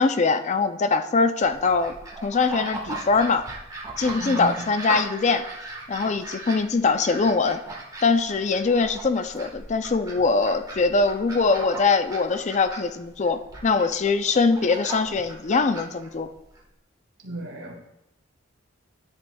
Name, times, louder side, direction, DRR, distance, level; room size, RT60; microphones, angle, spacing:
voice 1, 0.0-1.9 2.2-3.4 4.0-5.5 5.9-7.6 8.0-16.3, left 4 dB, 35° left, 9 dB, 0.4 m, -22 dB
sound 1, 1.4-16.6, right 2 dB, 20° right, 1.4 m, -38 dB
voice 2, 4.2-4.6 17.2-17.8, right 1 dB, 70° right, 0 dB, 1.8 m, -34 dB
10.5 x 9.6 x 2.3 m, 0.91 s
head